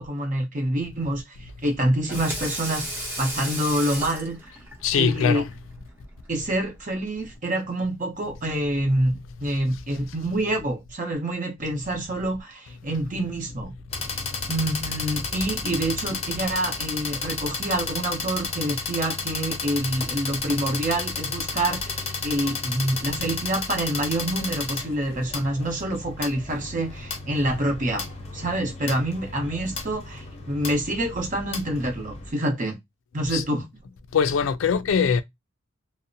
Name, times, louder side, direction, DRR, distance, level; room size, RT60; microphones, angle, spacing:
voice 1, 0.0-4.4 5.0-5.4 6.3-13.7 14.1-14.2 14.5-28.0 28.3-32.8 33.1-33.6, right 1 dB, 40° right, 0.8 m, -27 dB
Water tap faucet / Sink (filling or washing), 1.9-7.4, right 1 dB, 10° right, 0.7 m, -36 dB
voice 2, 4.8-5.5 9.9-10.0 33.3-33.4 34.1-35.2, left 6 dB, 75° left, 0.3 m, -22 dB
sound 1, 13.9-32.3, left 4 dB, 30° left, 0.6 m, -32 dB
2.6 x 2.1 x 2.5 m
head